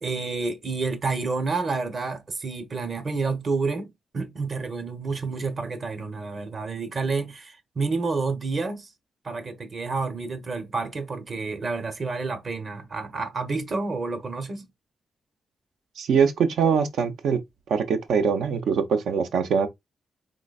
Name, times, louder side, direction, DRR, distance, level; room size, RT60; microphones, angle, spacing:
voice 1, 0.0-8.9 9.2-14.7, right 4 dB, 55° right, 0.9 m, -29 dB
voice 2, 16.0-17.4 17.7-19.7, right 6 dB, 80° right, 0.5 m, -23 dB
3.8 x 3.2 x 2.3 m
supercardioid pair, 50°, 0 cm